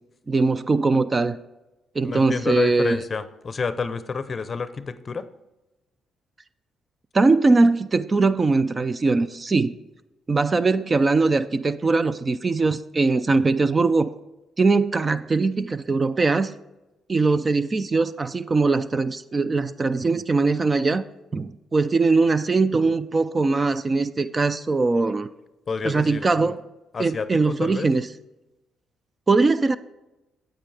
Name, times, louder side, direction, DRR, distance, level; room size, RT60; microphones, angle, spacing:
voice 1, 0.3-1.4 2.0-3.0 7.1-9.7 10.3-14.1 14.6-16.5 17.1-21.0 21.3-25.3 25.8-26.6 27.0-28.1 29.3-29.8, right 3 dB, 30° right, 13 dB, 0.4 m, -21 dB
voice 2, 2.0-5.3 25.7-26.6 26.9-27.9, left 5 dB, 40° left, 13 dB, 0.6 m, -29 dB
9.0 x 8.2 x 3.3 m, 1.0 s
cardioid pair, 90°, 0 cm